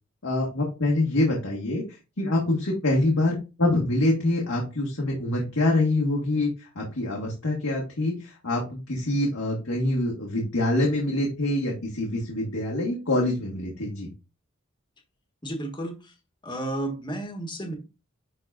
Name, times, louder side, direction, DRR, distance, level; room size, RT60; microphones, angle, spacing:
voice 1, 0.2-14.1, left 2 dB, 80° left, -2 dB, 1.7 m, -25 dB
voice 2, 15.4-16.1 16.4-17.7, right 1 dB, 20° left, 3 dB, 1.5 m, -32 dB
10.5 x 4.0 x 2.5 m, 0.29 s
head